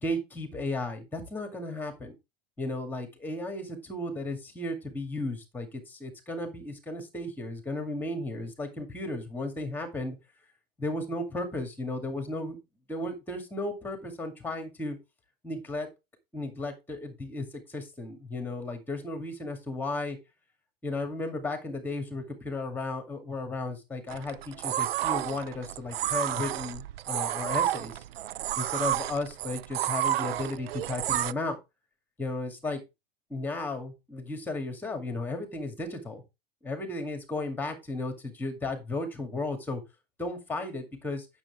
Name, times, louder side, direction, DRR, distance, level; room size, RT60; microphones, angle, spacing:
voice 1, 0.0-2.2 2.6-10.2 10.8-12.6 12.9-15.0 15.4-15.9 16.3-20.2 20.8-28.0 28.6-31.6 32.2-32.8 33.3-36.2 36.6-39.8 40.2-41.3, left 2 dB, 5° left, 6 dB, 2.1 m, -34 dB
sound 1, 24.1-31.3, right 13 dB, 90° right, 0.5 m, -30 dB
8.9 x 7.0 x 3.5 m, 0.24 s
supercardioid pair, 145°, 29 cm